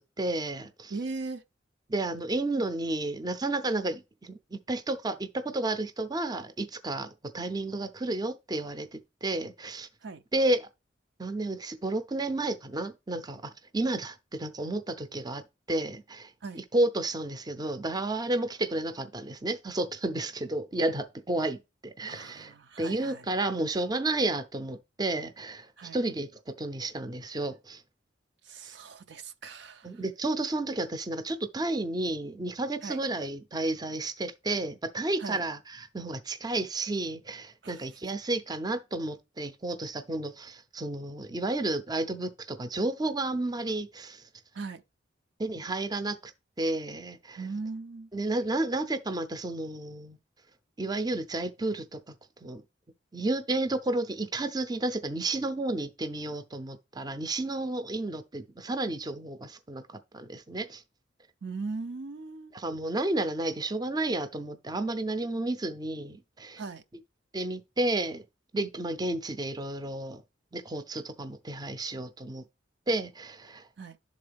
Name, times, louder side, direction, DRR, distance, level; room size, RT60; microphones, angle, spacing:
voice 1, 0.0-0.9 1.9-9.9 10.3-10.7 11.2-15.4 15.7-27.8 28.6-28.7 29.8-44.2 45.4-46.3 46.6-47.4 48.1-50.2 50.8-52.1 52.4-52.6 53.1-60.8 62.5-66.6 67.3-68.2 68.5-70.2 70.5-72.4 72.9-73.7, right 2 dB, 20° right, 0.6 m, -32 dB
voice 2, 0.9-1.4 10.0-10.2 16.4-16.6 22.1-23.2 25.8-26.0 28.4-29.9 32.8-33.0 35.2-35.4 37.6-37.8 44.5-44.8 47.4-48.1 61.4-62.5 66.6-66.8 73.8-74.0, right 4 dB, 65° right, 0.5 m, -39 dB
11.0 x 3.8 x 3.4 m
head